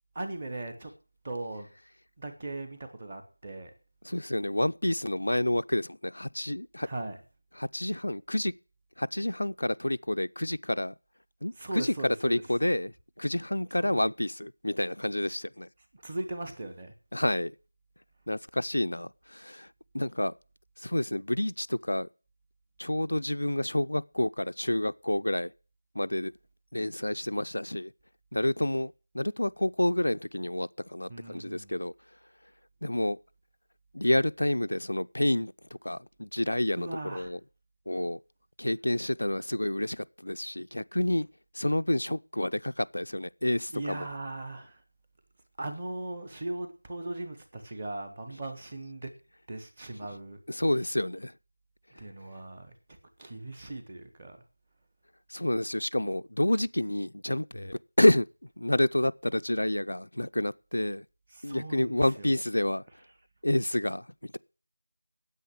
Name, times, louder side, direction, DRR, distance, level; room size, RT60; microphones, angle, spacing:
voice 1, 0.1-0.9 1.2-1.7 2.2-3.7 6.8-7.2 11.5-12.4 13.8-14.0 15.9-16.9 31.1-31.7 36.8-37.4 43.7-44.8 45.6-49.1 49.5-50.4 51.9-54.4 61.3-62.3, right 2 dB, 15° right, 1.0 m, -39 dB
voice 2, 4.0-6.9 7.6-8.5 9.0-10.9 11.4-15.7 17.1-17.5 18.3-19.7 19.9-20.3 20.8-22.1 22.8-25.5 25.9-26.3 26.7-27.9 28.3-31.9 32.8-33.2 33.9-35.5 35.8-37.4 37.9-38.2 38.6-41.3 41.5-44.0 50.5-51.3 55.3-58.3 58.6-61.1 61.4-62.8 63.4-64.4, left 1 dB, 90° left, 0.5 m, -29 dB
9.3 x 8.2 x 8.3 m
figure-of-eight pair, 180°, 0 cm